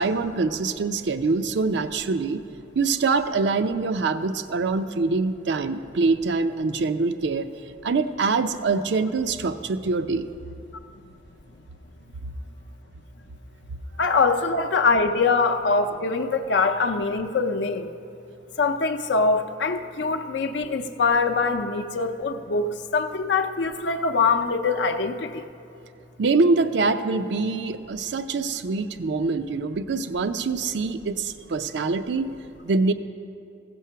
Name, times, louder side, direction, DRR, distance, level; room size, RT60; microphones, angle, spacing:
voice 1, 0.0-2.4 2.7-7.5 7.8-10.3 26.2-32.3 32.6-32.9, right 4 dB, 75° right, 11 dB, 0.5 m, -24 dB
voice 2, 14.0-17.9 18.6-25.4, left 4 dB, 75° left, 7 dB, 0.6 m, -23 dB
15.5 x 6.1 x 5.6 m, 2.6 s
head